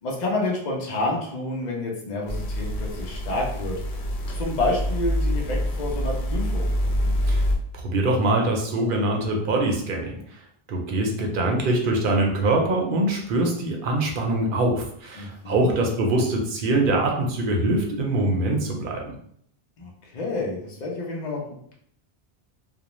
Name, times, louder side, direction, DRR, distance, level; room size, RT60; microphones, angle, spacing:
voice 1, 0.0-3.8 4.3-6.7 15.2-15.7 19.8-21.4, left 2 dB, 50° left, -2 dB, 0.7 m, -29 dB
sound 1, 2.3-7.6, equal, 85° left, 0.8 m, -26 dB
voice 2, 7.7-10.4 10.7-19.1, right 2 dB, 60° right, 1 dB, 0.7 m, -23 dB
2.4 x 2.1 x 2.9 m, 0.68 s
omnidirectional pair, 1.1 m